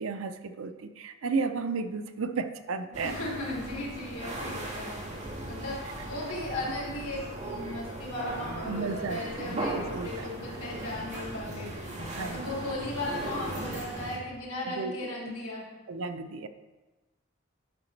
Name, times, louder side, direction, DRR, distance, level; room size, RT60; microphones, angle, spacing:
voice 1, 0.0-3.1 8.7-10.3 12.1-12.4 14.7-15.1 15.9-16.5, right 4 dB, 70° right, 9 dB, 0.5 m, -33 dB
sound 1, 2.9-14.2, right 1 dB, 35° right, 1.5 m, -38 dB
voice 2, 3.0-5.0 5.5-11.7 12.2-15.7, left 1 dB, 90° left, -4 dB, 2.6 m, -36 dB
10.0 x 5.8 x 3.2 m, 1.2 s
head